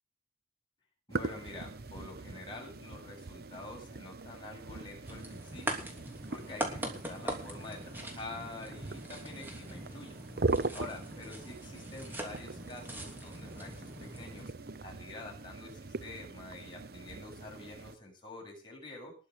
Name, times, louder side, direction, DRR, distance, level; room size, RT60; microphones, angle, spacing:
voice 1, 1.1-5.9 6.3-10.2 10.7-14.5 14.8-19.1, left 2 dB, 25° left, -1 dB, 7.9 m, -47 dB
sound 1, 1.1-18.0, right 3 dB, 55° right, 0.8 m, -41 dB
sound 2, 5.0-14.4, right 1 dB, 10° right, 3.1 m, -42 dB
20.5 x 6.9 x 6.5 m, 0.37 s
head